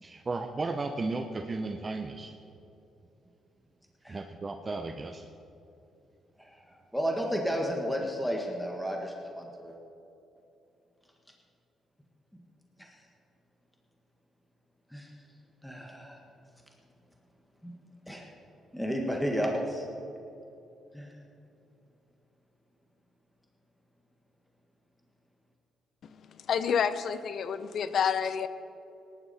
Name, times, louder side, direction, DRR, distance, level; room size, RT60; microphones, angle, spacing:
voice 1, 0.0-2.3 4.1-5.3, right 3 dB, 30° right, 5 dB, 0.7 m, -34 dB
voice 2, 6.4-9.8 12.8-12.9 14.9-15.1 15.6-16.2 17.6-17.7 18.1-18.3 18.7-19.9 20.9-21.1, equal, 5° left, 0 dB, 1.6 m, -32 dB
voice 3, 26.0-28.5, left 7 dB, 60° left, 13 dB, 0.7 m, -29 dB
18.5 x 11.0 x 4.3 m, 2.8 s
cardioid pair, 90°, 0 cm